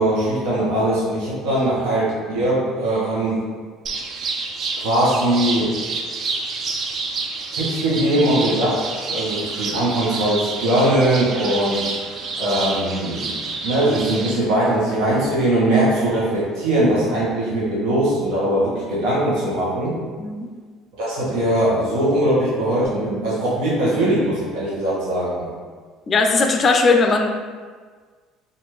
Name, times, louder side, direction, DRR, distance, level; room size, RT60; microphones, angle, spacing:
voice 1, 0.0-3.4 4.8-5.7 7.5-8.8 9.1-13.3 13.6-20.0 21.0-25.5, right 1 dB, 80° right, -8 dB, 1.1 m, -20 dB
sound 1, 3.9-14.3, right 4 dB, 45° right, 0.5 m, -28 dB
voice 2, 20.2-20.5 26.1-27.3, left 3 dB, 35° left, 4 dB, 0.4 m, -18 dB
4.0 x 2.6 x 3.1 m, 1.5 s
supercardioid pair, 100°, 0 cm